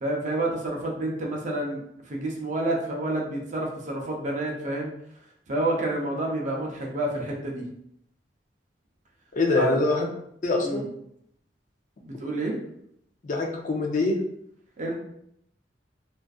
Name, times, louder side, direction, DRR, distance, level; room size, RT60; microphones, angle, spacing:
voice 1, 0.0-4.9 5.5-7.7 9.5-9.8 10.6-10.8 12.0-12.6 14.8-14.9, right 2 dB, 45° right, 0 dB, 0.5 m, -29 dB
voice 2, 9.3-10.1 10.4-10.9 13.2-14.2, left 3 dB, 45° left, 1 dB, 0.4 m, -24 dB
2.4 x 2.4 x 2.3 m, 0.73 s
head